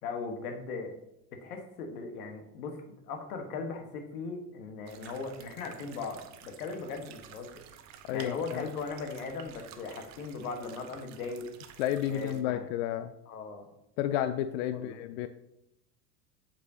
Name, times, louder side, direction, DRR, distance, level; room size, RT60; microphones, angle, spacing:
voice 1, 0.0-0.9 1.3-7.6 8.1-11.5 12.1-12.7 13.3-13.7 14.7-15.0, left 4 dB, 70° left, 6 dB, 1.4 m, -38 dB
sound 1, 4.9-12.4, right 9 dB, 35° right, 0.8 m, -52 dB
voice 2, 8.1-8.6 11.8-13.1 14.0-15.3, left 11 dB, 50° left, 10 dB, 0.5 m, -31 dB
7.8 x 6.2 x 2.8 m, 0.81 s
hypercardioid pair, 85°, 47 cm